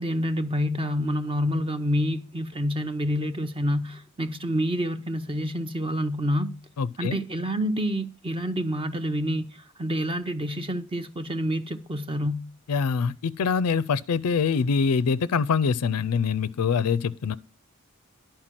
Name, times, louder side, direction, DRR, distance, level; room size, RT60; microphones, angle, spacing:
voice 1, 0.0-6.5 7.0-12.4, equal, 25° right, 0.6 m, -28 dB
voice 2, 6.8-7.2 12.7-17.3, left 5 dB, 85° left, 0.4 m, -24 dB
11.0 x 4.5 x 7.4 m
head